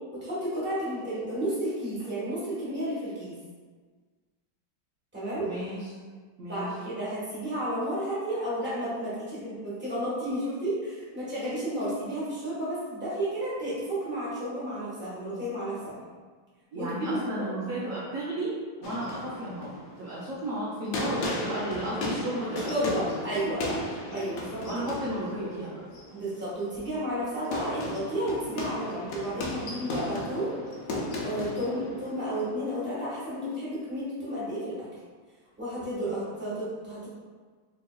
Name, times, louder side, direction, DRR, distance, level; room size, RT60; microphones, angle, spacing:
voice 1, 0.1-3.3 5.1-5.5 6.4-15.9 16.8-17.5 22.7-23.8 24.1-24.6 26.1-30.5 31.2-34.9 35.6-37.1, right 1 dB, 5° right, -10 dB, 0.9 m, -32 dB
voice 2, 5.4-5.9 6.4-6.7 16.7-23.1 23.4-23.8 24.6-25.8 36.0-36.3, right 1 dB, 70° right, -7 dB, 0.8 m, -34 dB
sound 1, 18.8-33.4, left 2 dB, 75° left, 0.7 m, -36 dB
4.6 x 2.8 x 2.2 m, 1.5 s
omnidirectional pair, 2.0 m